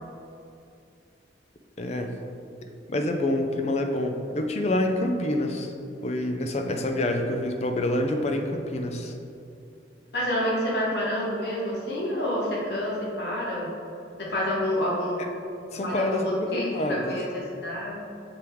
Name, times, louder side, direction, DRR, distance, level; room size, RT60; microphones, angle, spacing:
voice 1, 1.8-2.2 2.6-5.7 6.0-9.2 15.7-17.2, left 1 dB, 35° left, 5 dB, 0.5 m, -27 dB
voice 2, 10.1-13.7 14.2-15.2 15.7-18.0, left 1 dB, 65° left, -5 dB, 1.2 m, -28 dB
6.8 x 3.5 x 4.5 m, 2.6 s
head